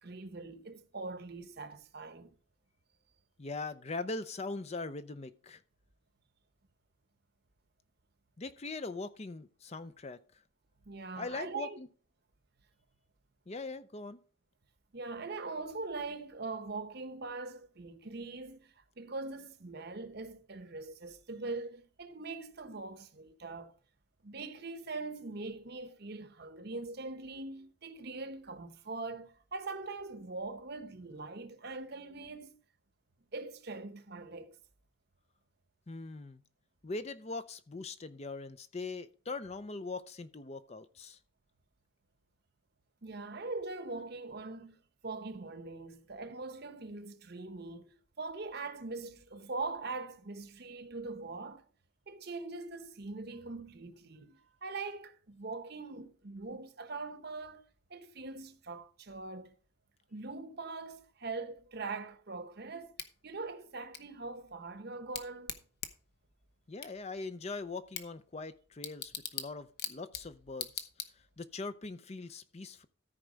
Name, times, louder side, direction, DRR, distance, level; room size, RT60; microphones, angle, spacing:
voice 1, 0.0-2.3 10.8-11.8 14.9-23.7 24.2-32.6 33.3-34.5 43.0-44.8 45.0-51.6 52.1-57.6 57.9-59.6 60.1-62.9 63.2-65.6, right 3 dB, 50° right, 0.9 m, -42 dB
voice 2, 3.4-5.6 8.4-10.2 11.1-11.9 13.5-14.2 35.9-36.4 36.8-41.2 66.7-70.9 71.1-72.9, left 3 dB, 30° left, 0.5 m, -41 dB
Bicycle / Tick, 63.0-71.5, left 9 dB, 50° left, 0.8 m, -45 dB
13.5 x 4.6 x 5.1 m
head